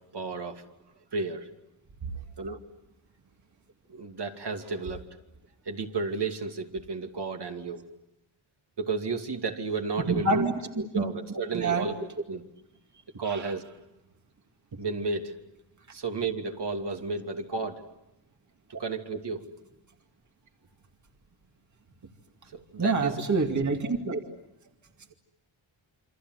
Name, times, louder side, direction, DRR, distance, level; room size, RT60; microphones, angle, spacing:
voice 1, 0.1-0.6 1.1-1.5 2.4-2.6 3.9-5.0 5.7-7.8 8.8-10.5 10.9-12.4 13.1-13.6 14.7-15.4 15.9-17.8 18.7-19.5 22.5-23.2 23.6-23.7, right 4 dB, 55° right, 3 dB, 2.7 m, -32 dB
voice 2, 10.1-10.5 10.9-11.0 11.5-11.9 13.2-13.5 17.5-17.7 22.8-24.2, right 3 dB, 35° right, 4 dB, 2.3 m, -26 dB
28.5 x 25.5 x 8.0 m, 0.87 s
wide cardioid pair, 105°, 48 cm